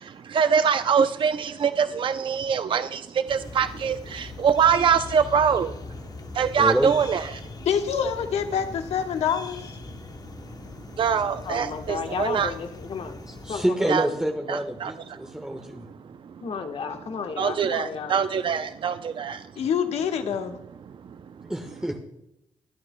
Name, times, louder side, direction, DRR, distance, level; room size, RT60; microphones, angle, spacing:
voice 1, 0.0-5.7 6.3-7.4 11.0-12.5 13.9-14.1 14.5-16.0 16.2-16.3 17.4-19.5 20.9-21.0, right 7 dB, 50° right, 11 dB, 0.5 m, -24 dB
sound 1, 3.3-13.7, left 4 dB, 35° left, 0.8 m, -41 dB
voice 2, 6.6-6.9 13.4-15.9 21.5-22.0, equal, 5° right, 3 dB, 1.3 m, -27 dB
voice 3, 7.6-9.6 19.6-20.5, left 8 dB, 80° left, 6 dB, 1.2 m, -26 dB
voice 4, 11.4-13.2 13.5-14.0 16.4-18.2, left 5 dB, 60° left, 6 dB, 1.2 m, -33 dB
24.5 x 8.9 x 2.2 m, 0.85 s
cardioid pair, 65°, 11 cm